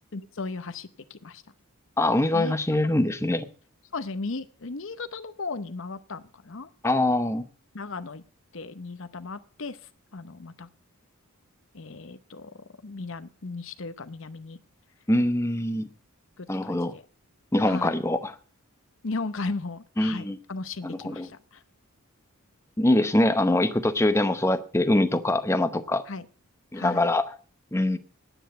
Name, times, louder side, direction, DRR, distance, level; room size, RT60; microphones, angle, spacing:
voice 1, 0.1-1.4 2.3-2.6 3.9-6.7 7.7-8.2 8.5-9.8 10.1-10.7 11.7-14.6 16.4-17.0 17.7-17.9 19.0-21.6 26.1-26.3 26.7-27.1, left 3 dB, 60° left, 11 dB, 0.8 m, -36 dB
voice 2, 2.0-3.5 6.8-7.5 15.1-15.9 16.5-16.9 17.5-18.3 20.0-20.4 20.8-21.3 22.8-26.0 26.7-27.3 27.7-28.0, left 1 dB, 10° left, 10 dB, 0.8 m, -23 dB
10.0 x 9.0 x 7.9 m, 0.42 s
head